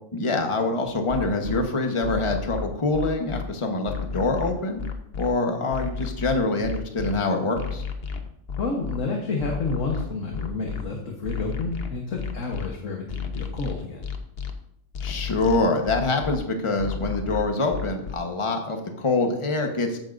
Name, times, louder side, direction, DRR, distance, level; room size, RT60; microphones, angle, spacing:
voice 1, 0.1-4.8 5.2-7.8 15.0-20.0, left 3 dB, 25° left, 4 dB, 1.1 m, -25 dB
sound 1, 0.9-1.6 2.0-3.4 3.9-5.3 5.7-7.1 7.6-9.0 9.4-10.8 11.3-12.7 13.1-14.5 14.9-16.4 16.8-18.1, left 6 dB, 55° left, 1.1 m, -32 dB
voice 2, 8.6-14.1, left 3 dB, 80° left, 1 dB, 1.6 m, -30 dB
14.0 x 9.0 x 2.6 m, 0.76 s
omnidirectional pair, 1.3 m